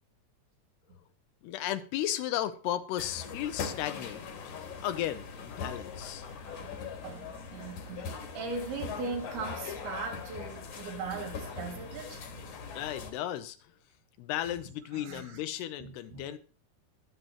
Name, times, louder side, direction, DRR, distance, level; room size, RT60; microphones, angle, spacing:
voice 1, 1.4-4.5 4.8-6.3 12.7-13.6 14.2-16.4, left 12 dB, 85° left, 2.8 m, -35 dB
sound 1, 3.0-13.1, left 5 dB, 55° left, 2.5 m, -41 dB
voice 2, 7.0-12.2 14.4-14.6 14.9-16.3, right 4 dB, 70° right, 4.2 m, -40 dB
23.0 x 7.9 x 3.0 m
omnidirectional pair, 4.8 m